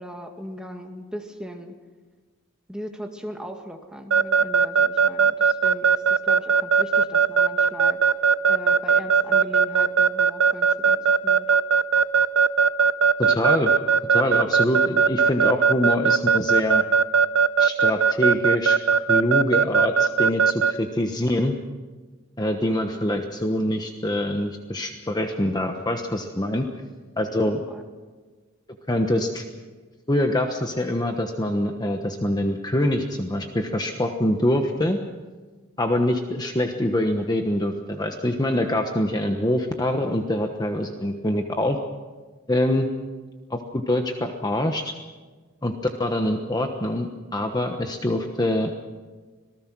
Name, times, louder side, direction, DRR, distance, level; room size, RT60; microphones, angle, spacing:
voice 1, 0.0-1.7 2.7-8.0 8.5-11.0 11.2-11.5 27.7-27.8, equal, 5° right, 3 dB, 2.0 m, -38 dB
Keyboard (musical) / Alarm, 4.1-20.7, right 6 dB, 75° right, 0.7 m, -18 dB
voice 2, 13.2-13.7 14.1-16.8 17.6-18.8 19.1-21.6 22.4-26.7 27.2-27.6 28.9-29.4 30.1-35.0 35.8-41.8 42.5-42.9 43.5-44.9 45.6-45.7 46.0-48.8, left 1 dB, 20° left, 4 dB, 1.1 m, -24 dB
26.0 x 19.0 x 6.1 m, 1.3 s
head